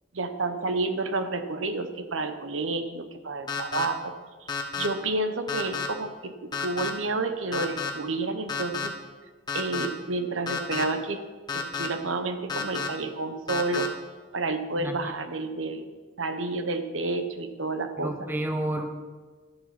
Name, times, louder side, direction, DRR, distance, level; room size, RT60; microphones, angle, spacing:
voice 1, 0.1-4.1 4.8-8.9 9.5-11.2 11.5-13.9 14.3-15.9 16.2-18.3, right 3 dB, 90° right, 8 dB, 0.9 m, -30 dB
sound 1, 3.5-3.9 4.5-4.9 5.5-5.9 6.5-6.9 7.5-7.9 8.5-8.9 9.5-9.9 10.5-10.8 11.5-11.9 12.5-12.9 13.5-13.9, left 5 dB, 20° left, 1.1 m, -30 dB
voice 2, 18.0-18.9, right 1 dB, 10° right, 6 dB, 0.8 m, -30 dB
12.5 x 7.3 x 5.8 m, 1.4 s
head